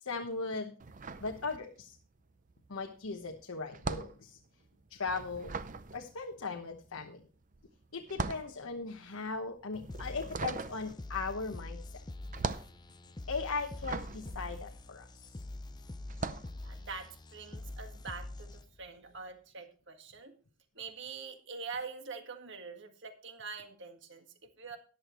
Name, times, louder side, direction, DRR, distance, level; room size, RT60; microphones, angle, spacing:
voice 1, 0.0-0.7 1.2-2.0 2.7-4.4 4.9-5.6 5.9-7.2 7.9-12.0 13.3-15.4, left 4 dB, 85° left, 3 dB, 1.1 m, -38 dB
sound 1, 0.8-2.0 2.3-15.5 16.0-16.6, right 4 dB, 40° right, 0.6 m, -40 dB
sound 2, 9.9-18.9, left 2 dB, 20° left, 0.5 m, -45 dB
voice 2, 16.6-20.4 20.8-24.8, right 5 dB, 55° right, 6 dB, 1.7 m, -45 dB
13.5 x 11.0 x 3.1 m, 0.38 s
head